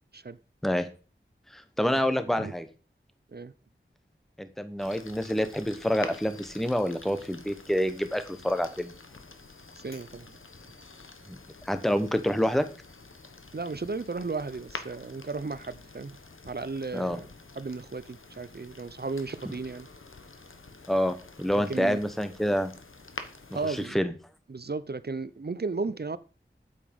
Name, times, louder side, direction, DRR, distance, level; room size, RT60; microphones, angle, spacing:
voice 1, 1.5-2.7 4.4-8.9 11.3-11.4 11.6-12.7 16.9-17.2 20.9-22.7 23.5-24.1, equal, ahead, 1.0 m, -27 dB
sound 1, 4.8-23.9, left 3 dB, 80° left, 1.1 m, -47 dB
voice 2, 9.8-10.3 13.5-16.2 16.4-17.3 17.6-19.9 21.5-22.0 23.5-24.0 24.5-26.2, right 4 dB, 50° right, 0.6 m, -34 dB
8.3 x 7.3 x 5.2 m
wide cardioid pair, 40°, 21 cm